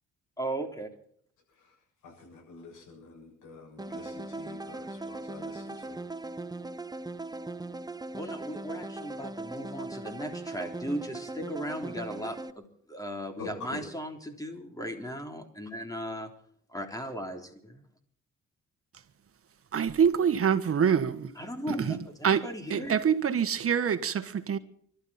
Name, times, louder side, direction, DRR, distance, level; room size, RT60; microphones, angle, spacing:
voice 1, 0.4-0.9 8.1-12.6 12.9-16.3 16.7-17.8 21.4-22.0 22.3-23.0, equal, 10° left, 3.6 m, -37 dB
voice 2, 2.0-6.0 13.4-13.8, left 3 dB, 85° left, 7.6 m, -46 dB
sound 1, 3.8-12.5, right 2 dB, 15° right, 1.0 m, -39 dB
voice 3, 19.7-21.3 21.7-22.0 22.2-22.4 22.7-24.6, right 7 dB, 50° right, 1.5 m, -25 dB
25.0 x 13.0 x 4.3 m
cardioid pair, 90°, 30 cm